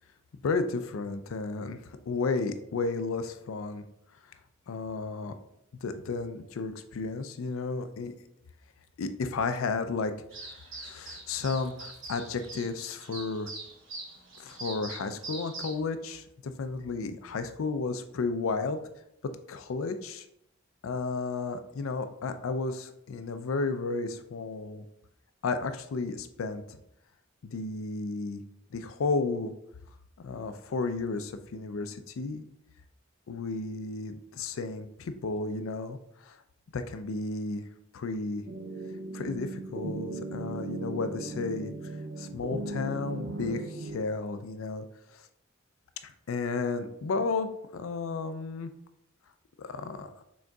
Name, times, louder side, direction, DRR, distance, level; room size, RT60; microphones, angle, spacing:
voice 1, 0.4-3.8 4.7-5.3 5.8-8.1 9.0-10.1 10.4-13.5 14.4-18.8 19.5-20.2 20.8-24.8 25.4-26.6 27.4-28.4 28.7-29.5 30.2-32.4 33.3-36.0 36.2-36.4 36.7-37.6 37.9-38.4 39.1-41.7 42.2-44.9 46.0-48.7 49.6-50.1, left 4 dB, 85° left, 10 dB, 0.4 m, -33 dB
sound 1, 10.3-15.8, right 2 dB, 70° right, 1.2 m, -43 dB
sound 2, 38.5-44.0, right 2 dB, 55° right, 0.4 m, -37 dB
6.2 x 3.7 x 2.3 m, 0.79 s
head